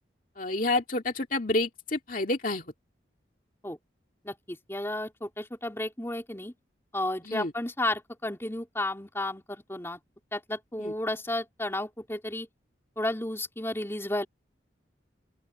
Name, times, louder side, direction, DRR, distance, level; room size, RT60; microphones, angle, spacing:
voice 1, 0.4-2.7 7.2-7.5 10.8-10.9, left 2 dB, 45° left, 2.5 m, -29 dB
voice 2, 4.2-6.5 6.9-10.0 10.3-12.5 13.0-14.3, left 1 dB, 15° left, 3.4 m, -32 dB
open air
head